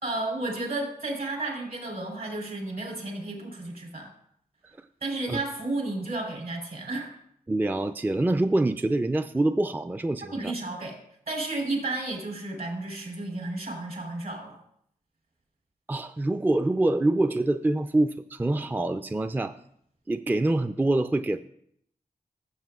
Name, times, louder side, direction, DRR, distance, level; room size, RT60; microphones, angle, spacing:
voice 1, 0.0-4.1 5.0-7.1 10.3-10.9 11.3-14.6, right 2 dB, 70° right, 0 dB, 3.6 m, -32 dB
voice 2, 7.5-10.5 15.9-19.5 20.1-21.4, right 2 dB, 10° right, 9 dB, 0.4 m, -25 dB
15.0 x 7.4 x 2.4 m, 0.69 s
cardioid pair, 45°, 15 cm